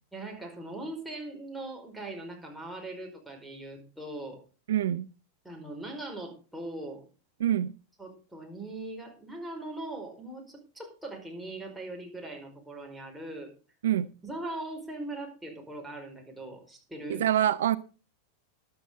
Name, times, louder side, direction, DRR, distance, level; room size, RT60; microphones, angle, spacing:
voice 1, 0.1-4.4 5.4-7.1 8.0-13.5 14.2-17.3, right 2 dB, 5° right, 0 dB, 5.0 m, -40 dB
voice 2, 4.7-5.1 7.4-7.7 13.8-14.1 17.1-17.8, right 11 dB, 60° right, 15 dB, 0.5 m, -25 dB
13.5 x 11.5 x 4.0 m, 0.35 s
figure-of-eight pair, 90°, 0 cm